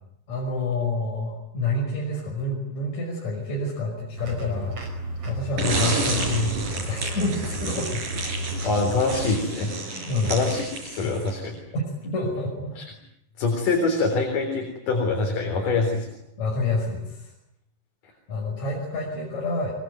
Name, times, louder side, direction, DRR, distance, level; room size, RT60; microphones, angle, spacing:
voice 1, 0.3-4.7 5.2-7.9 9.9-10.3 11.0-11.2 11.7-12.7 16.4-17.3 18.3-19.7, left 2 dB, 55° left, -1 dB, 6.8 m, -28 dB
sound 1, 4.2-9.4, equal, 45° right, 6.0 m, -33 dB
sound 2, 5.6-11.5, right 3 dB, 65° right, 7.2 m, -30 dB
voice 2, 8.6-11.5 12.8-12.9 13.4-16.1, left 3 dB, 75° left, 2 dB, 5.5 m, -25 dB
24.5 x 23.0 x 9.4 m, 0.78 s
omnidirectional pair, 3.8 m